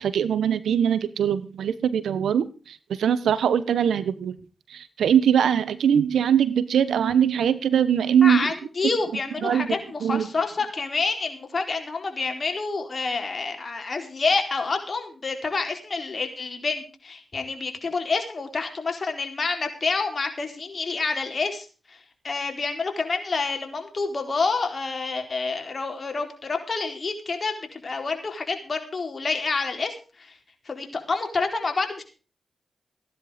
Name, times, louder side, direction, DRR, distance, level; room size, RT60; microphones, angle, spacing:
voice 1, 0.0-4.4 4.7-8.5 9.4-10.3, right 8 dB, 85° right, 15 dB, 1.1 m, -22 dB
voice 2, 8.2-30.4 30.6-32.0, left 4 dB, 55° left, 4 dB, 4.4 m, -28 dB
16.0 x 10.5 x 5.1 m, 0.36 s
supercardioid pair, 40°, 0 cm